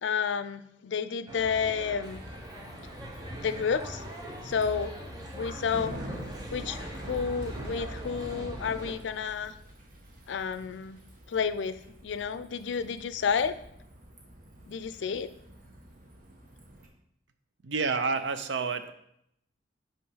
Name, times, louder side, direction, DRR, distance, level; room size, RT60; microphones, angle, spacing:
voice 1, 0.0-2.2 3.4-4.0 4.4-4.9 5.3-5.9 6.5-9.5 10.3-11.0 11.3-13.5 14.7-15.3, left 6 dB, 85° left, 12 dB, 0.4 m, -30 dB
sound 1, 1.3-8.9, equal, 20° right, 1.1 m, -41 dB
Bicycle, 2.0-16.9, right 1 dB, 50° right, 1.2 m, -46 dB
voice 2, 17.6-18.9, right 4 dB, 85° right, 9 dB, 0.6 m, -29 dB
5.7 x 4.5 x 5.5 m, 0.76 s
head